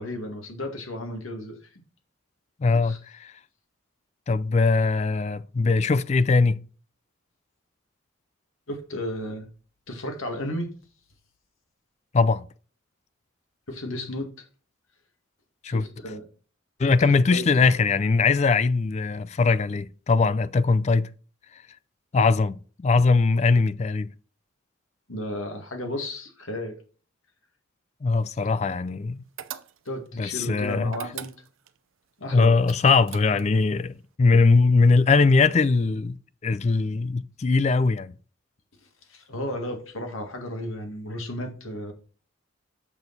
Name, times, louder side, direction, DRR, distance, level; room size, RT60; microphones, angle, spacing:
voice 1, 0.0-1.6 2.8-3.0 8.7-9.5 9.9-10.7 13.7-14.3 15.6-16.2 16.8-17.5 25.1-26.7 28.4-28.5 29.9-31.3 32.2-32.5 39.1-41.9, left 1 dB, 80° left, 2.0 m, -33 dB
voice 2, 2.6-3.3 4.3-6.6 12.1-12.5 15.6-15.8 16.8-21.1 22.1-24.1 28.0-29.2 30.2-31.0 32.3-36.2 36.4-38.1, left 4 dB, 30° left, 0.3 m, -21 dB
sound 1, 29.4-30.1 30.9-31.8 32.6-33.6, right 9 dB, 75° right, 0.6 m, -39 dB
6.8 x 6.3 x 4.1 m
head